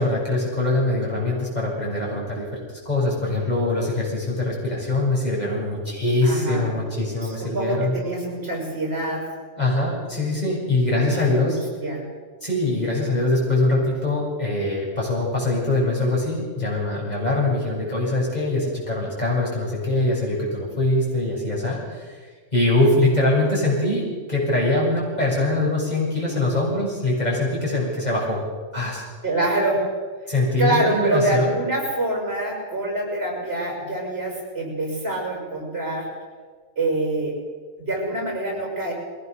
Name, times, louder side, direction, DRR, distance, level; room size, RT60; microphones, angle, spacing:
voice 1, 0.0-2.6 2.8-8.0 9.6-11.6 12.4-28.4 28.7-29.0 30.3-31.5, left 2 dB, 30° left, -5 dB, 7.7 m, -23 dB
voice 2, 6.2-6.8 7.2-9.3 10.9-12.1 29.2-29.9 30.6-36.1 36.8-37.3 37.8-38.9, right 1 dB, 50° right, 0 dB, 6.3 m, -25 dB
22.0 x 17.5 x 6.8 m, 1.5 s
omnidirectional pair, 1.3 m